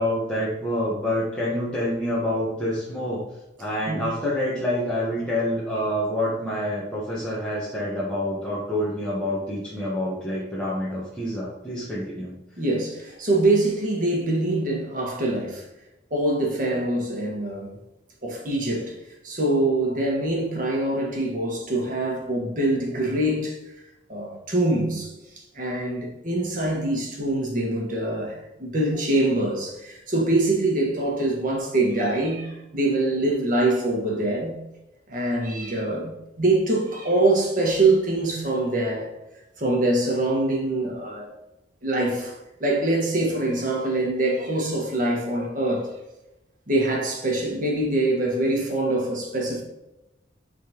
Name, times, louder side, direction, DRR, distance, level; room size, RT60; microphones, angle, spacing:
voice 1, 0.0-3.2 3.6-12.3, left 1 dB, 5° left, 1.2 m, -27 dB
voice 2, 12.6-15.6 16.1-17.8 18.2-18.9 19.2-23.6 24.1-25.1 25.5-34.6 35.1-39.1 39.6-41.3 41.8-42.3 42.6-45.9 46.7-49.6, right 2 dB, 45° right, 1.6 m, -24 dB
10.0 x 3.9 x 3.0 m
head